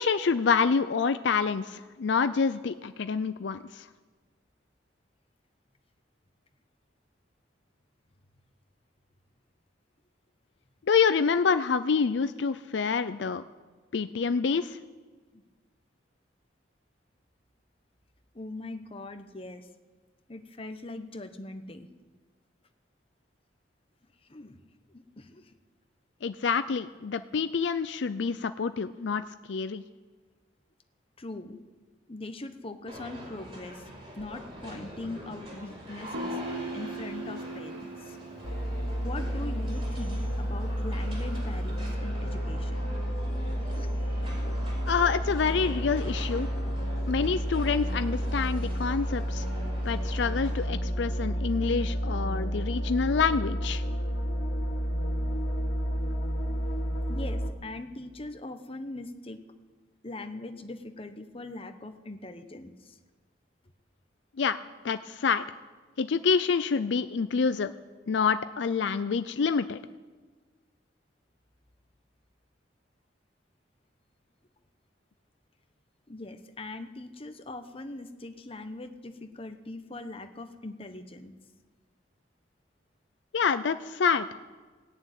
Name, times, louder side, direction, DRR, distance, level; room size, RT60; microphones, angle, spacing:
voice 1, 0.0-3.9 10.9-13.4 13.9-14.8 26.2-29.2 29.5-29.8 44.9-46.5 47.1-49.5 49.9-53.8 64.4-64.6 64.8-65.4 66.0-67.7 68.1-69.8 83.3-84.3, left 5 dB, 70° left, 12 dB, 0.5 m, -27 dB
voice 2, 18.3-19.7 20.3-21.9 24.2-24.6 24.9-25.5 31.2-31.6 32.1-33.9 34.2-36.4 36.7-38.2 39.0-42.9 43.2-43.9 57.1-59.4 60.0-63.0 76.1-81.3, left 2 dB, 30° left, 8 dB, 1.0 m, -41 dB
sound 1, 32.9-50.6, equal, 30° right, 4.8 m, -44 dB
Guitar, 36.1-39.8, right 1 dB, 70° right, 1.0 m, -39 dB
sound 2, 38.4-57.5, equal, 90° left, 2.1 m, -31 dB
18.0 x 7.1 x 9.2 m, 1.4 s
head